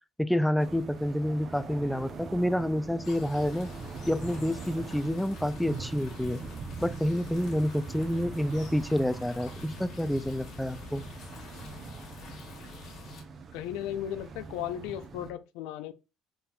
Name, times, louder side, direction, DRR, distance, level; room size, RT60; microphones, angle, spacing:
voice 1, 0.2-3.7 4.1-6.4 6.8-11.0, equal, 5° left, 0.3 m, -28 dB
sound 1, 0.6-15.3, right 4 dB, 45° right, 0.7 m, -42 dB
sound 2, 3.0-13.2, left 4 dB, 60° left, 1.6 m, -47 dB
voice 2, 13.5-15.9, left 11 dB, 80° left, 0.4 m, -36 dB
4.1 x 3.8 x 2.2 m
supercardioid pair, 80°, 0 cm